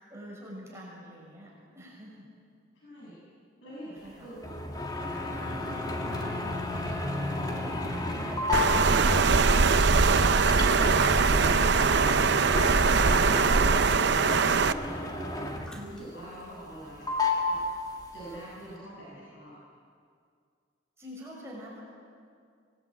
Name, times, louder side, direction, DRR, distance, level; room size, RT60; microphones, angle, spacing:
voice 1, 0.0-2.3 4.0-4.3 21.0-21.8, equal, 15° right, -4 dB, 6.2 m, -45 dB
voice 2, 2.7-3.2 3.6-4.4 4.9-7.0 7.4-9.8 14.0-15.2 15.8-17.1 17.4-17.6 18.1-19.6, right 1 dB, 80° left, -6 dB, 7.3 m, -46 dB
sound 1, 4.4-15.9 16.2-16.8 17.1-18.4, left 1 dB, 20° left, 2.4 m, -32 dB
Water, 8.5-14.7, right 4 dB, 60° right, 0.7 m, -22 dB
Splash splatter, 11.3-11.9 13.2-14.5 15.6-16.4 17.0-17.1, equal, 5° left, 2.9 m, -47 dB
26.0 x 20.0 x 8.9 m, 2.2 s
head